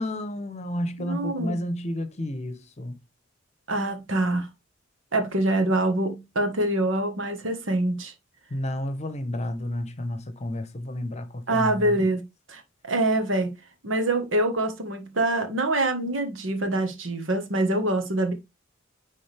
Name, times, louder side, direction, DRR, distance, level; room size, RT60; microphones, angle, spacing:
voice 1, 0.0-3.0 8.5-12.1, left 1 dB, 35° left, 0.9 m, -31 dB
voice 2, 1.0-1.6 3.7-4.5 5.1-8.1 11.5-12.2 12.5-12.6 12.9-13.5 13.8-18.3, right 1 dB, 90° right, 1.5 m, -25 dB
10.0 x 3.8 x 3.4 m
head